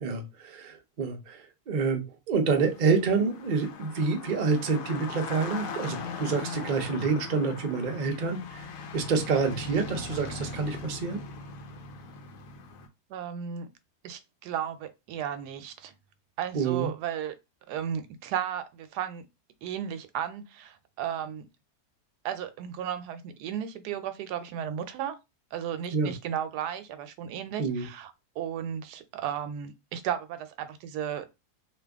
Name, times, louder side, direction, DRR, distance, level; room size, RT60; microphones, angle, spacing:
voice 1, 0.0-8.7 8.9-11.2 16.5-16.9 25.9-26.1 27.6-27.9, right 4 dB, 55° right, 0.5 m, -28 dB
sound 1, 2.4-12.9, left 4 dB, 65° left, 1.0 m, -40 dB
voice 2, 13.1-13.7 14.0-15.9 16.4-17.3 17.7-19.2 19.6-21.5 22.2-25.2 25.5-31.3, right 9 dB, 85° right, 1.1 m, -34 dB
2.9 x 2.5 x 3.4 m
omnidirectional pair, 1.7 m